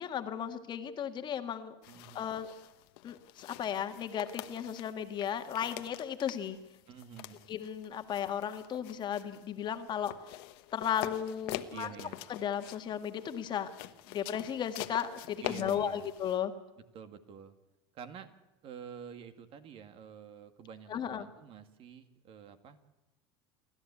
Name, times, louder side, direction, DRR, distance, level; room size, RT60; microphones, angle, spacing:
voice 1, 0.0-1.7 2.1-2.5 3.0-6.6 7.5-10.1 10.7-11.9 12.3-13.7 14.1-16.5 20.9-21.3, left 9 dB, 35° left, 7 dB, 1.7 m, -35 dB
sound 1, 1.8-16.4, left 17 dB, 75° left, 1.2 m, -46 dB
voice 2, 1.9-2.3 6.9-7.4 11.7-12.2 15.4-16.1 16.9-17.5 17.9-18.3 18.6-22.8, right 8 dB, 45° right, 9 dB, 2.0 m, -48 dB
29.0 x 13.0 x 8.5 m, 0.98 s
supercardioid pair, 115°, 13 cm